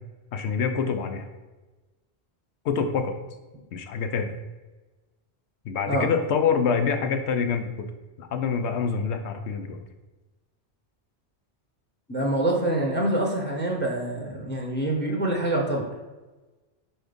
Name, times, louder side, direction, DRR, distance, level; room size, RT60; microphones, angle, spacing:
voice 1, 0.3-1.3 2.6-3.1 3.7-4.3 5.6-7.7 8.2-9.8, left 6 dB, 75° left, 7 dB, 0.9 m, -26 dB
voice 2, 12.1-15.9, right 1 dB, 10° left, 0 dB, 0.8 m, -26 dB
4.6 x 4.3 x 5.1 m, 1.2 s
omnidirectional pair, 1.2 m